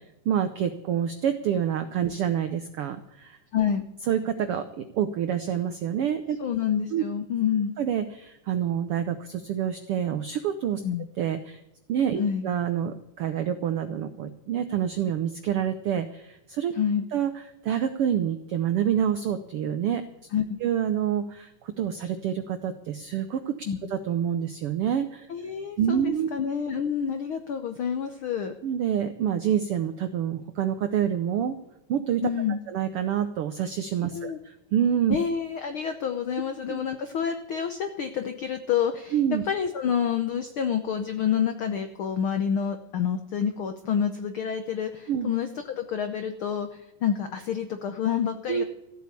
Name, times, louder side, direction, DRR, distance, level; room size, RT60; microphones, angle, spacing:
voice 1, 0.2-3.4 4.1-6.4 6.9-7.0 7.8-10.8 11.2-11.6 11.9-16.7 17.1-17.3 17.6-20.0 20.6-23.6 23.9-25.3 25.8-26.3 28.6-31.6 31.9-32.3 32.7-35.2 36.7-36.8 39.1-39.4 45.1-45.3 48.5-48.6, right 9 dB, 90° right, 9 dB, 1.2 m, -27 dB
voice 2, 3.5-3.8 6.4-7.7 10.8-11.1 12.2-12.5 16.7-17.0 20.3-20.6 23.7-23.8 25.3-28.5 32.2-32.6 34.1-34.4 35.1-39.2 39.4-48.6, left 8 dB, 85° left, 7 dB, 1.1 m, -28 dB
15.0 x 8.5 x 8.4 m, 0.87 s
omnidirectional pair, 3.7 m